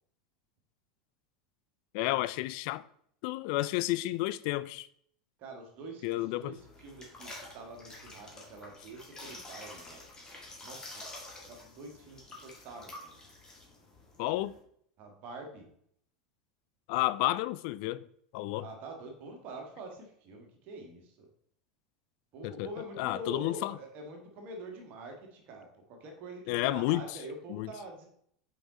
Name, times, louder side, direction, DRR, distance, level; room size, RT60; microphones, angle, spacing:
voice 1, 1.9-2.8 3.2-4.9 6.0-6.6 14.2-14.5 16.9-18.0 18.3-18.7 22.4-22.7 23.0-23.8 26.5-27.0 27.5-27.7, left 17 dB, 60° left, 0.3 m, -31 dB
voice 2, 5.4-10.0 10.6-11.0 11.4-13.2 15.0-15.7 18.5-21.3 22.3-28.1, right 2 dB, 50° right, 1.6 m, -46 dB
sound 1, 6.6-14.6, left 2 dB, 20° left, 2.0 m, -49 dB
5.6 x 5.0 x 4.1 m
hypercardioid pair, 85°, 4 cm